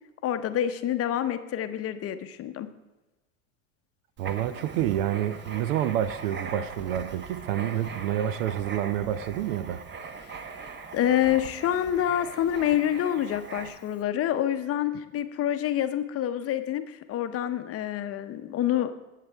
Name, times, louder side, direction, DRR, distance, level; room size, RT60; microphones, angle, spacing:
voice 1, 0.2-2.7 10.2-10.5 10.9-18.9, left 11 dB, 35° left, 0.7 m, -27 dB
Writing, 4.2-14.0, right 5 dB, 25° right, 1.0 m, -41 dB
voice 2, 4.2-9.8, right 11 dB, 65° right, 0.7 m, -28 dB
17.5 x 7.5 x 3.4 m
hypercardioid pair, 85°, 41 cm